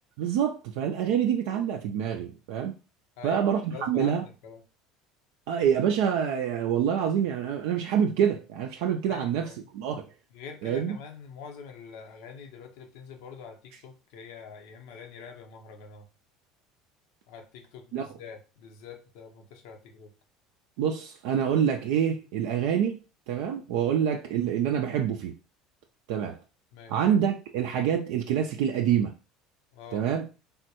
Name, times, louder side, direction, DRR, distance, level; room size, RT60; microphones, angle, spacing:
voice 1, 0.2-2.7 3.2-4.2 5.5-9.5 9.7-10.1 10.6-11.0 17.9-18.1 20.8-23.0 23.3-25.3 26.1-26.4 26.9-29.1 29.9-30.3, right 8 dB, 70° right, 0.3 m, -26 dB
voice 2, 3.2-4.6 9.1-9.7 10.3-16.1 17.3-20.1 26.7-27.0 29.7-30.1, left 6 dB, 70° left, 0.7 m, -45 dB
3.5 x 2.2 x 2.8 m
hypercardioid pair, 75°, 0 cm